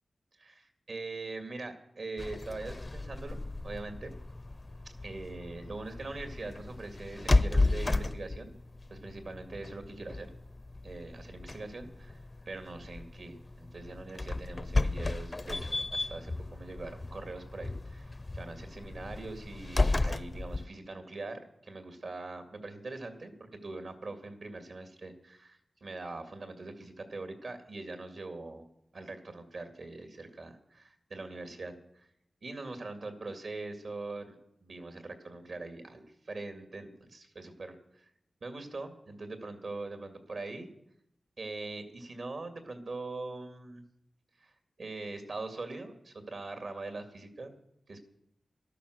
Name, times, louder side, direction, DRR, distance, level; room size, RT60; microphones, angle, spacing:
voice 1, 0.4-4.1 5.0-8.6 8.9-10.3 10.8-12.2 12.5-28.7 28.9-32.1 32.4-34.4 34.6-38.1 38.4-40.7 41.4-43.8 44.4-44.5 44.8-47.5 47.9-48.0, right 3 dB, 70° right, 7 dB, 2.3 m, -42 dB
sound 1, 2.2-20.6, left 2 dB, 30° left, 0.6 m, -33 dB
13.5 x 12.0 x 6.5 m, 0.76 s
wide cardioid pair, 75°, 0 cm